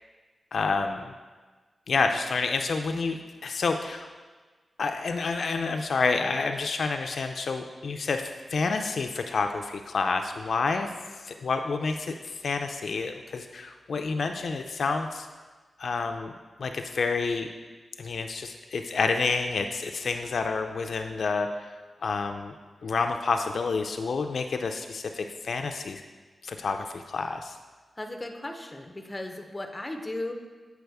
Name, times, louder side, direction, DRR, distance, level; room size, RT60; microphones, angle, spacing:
voice 1, 0.5-1.0 1.9-4.1 4.8-10.9 11.2-15.3 15.8-16.3 16.6-17.5 18.0-21.7 22.0-22.5 22.8-26.0 26.4-27.6, left 4 dB, 70° left, 5 dB, 0.3 m, -29 dB
voice 2, 28.0-30.3, left 1 dB, 15° left, 4 dB, 0.6 m, -36 dB
7.7 x 4.7 x 3.4 m, 1.4 s
wide cardioid pair, 105°, 0 cm